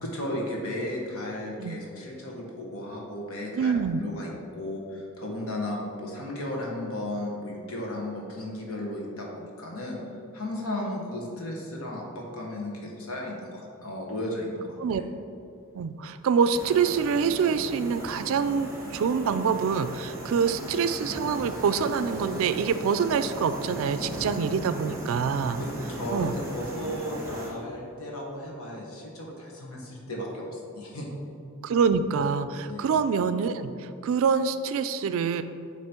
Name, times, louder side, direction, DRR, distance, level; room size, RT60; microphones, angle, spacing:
voice 1, 0.0-3.7 4.0-10.0 10.3-15.0 25.6-31.1 32.6-32.9, left 1 dB, 90° left, -2 dB, 1.3 m, -35 dB
voice 2, 3.6-4.0 14.8-15.0 15.7-25.6 26.1-26.3 31.6-35.4, right 6 dB, 70° right, 12 dB, 0.3 m, -26 dB
sound 1, 16.5-27.5, right 1 dB, 15° right, 1.1 m, -37 dB
8.8 x 3.1 x 4.4 m, 2.5 s
head